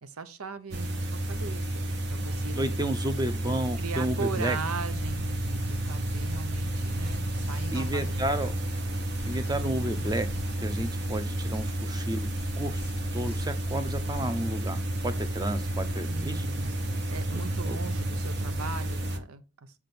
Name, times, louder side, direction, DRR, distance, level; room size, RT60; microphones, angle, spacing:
voice 1, 0.0-2.6 3.8-8.4 16.1-19.7, right 4 dB, 85° right, 0.8 m, -39 dB
sound 1, 0.7-19.2, right 1 dB, 50° right, 0.9 m, -31 dB
voice 2, 2.5-4.6 7.7-8.5 9.3-10.3 10.6-16.4 17.7-17.8, right 1 dB, 20° right, 0.6 m, -32 dB
sound 2, 4.9-14.3, left 5 dB, 45° left, 0.3 m, -45 dB
6.8 x 3.6 x 5.9 m
head